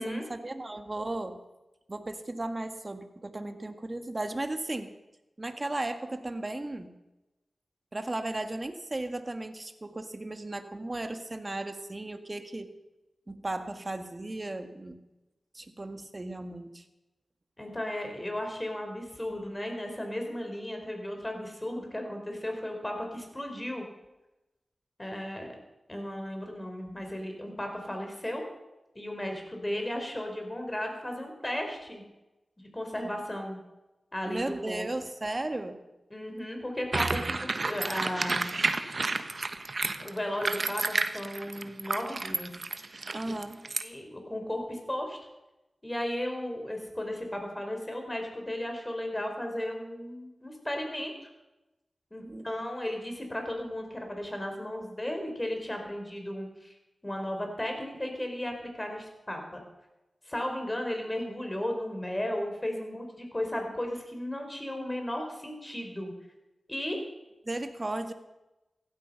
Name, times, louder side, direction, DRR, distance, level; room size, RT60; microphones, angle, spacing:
voice 1, 0.0-1.4 1.9-4.9 5.4-6.9 7.9-12.7 13.3-15.0 15.5-16.9 34.3-35.8 43.1-43.6 52.3-52.5 67.5-68.1, right 2 dB, 35° right, 8 dB, 1.7 m, -35 dB
voice 2, 17.6-23.8 25.0-25.5 25.9-28.4 28.9-32.0 32.6-33.6 34.1-34.9 36.1-38.5 40.0-42.5 43.2-43.3 43.8-45.2 45.8-51.1 52.1-56.7 57.0-59.6 60.2-66.1 66.7-67.0, left 1 dB, 20° left, 3 dB, 4.9 m, -35 dB
sound 1, 36.9-43.8, right 3 dB, 55° right, 1.1 m, -31 dB
16.0 x 12.5 x 5.8 m, 1.0 s
cardioid pair, 40°, 0 cm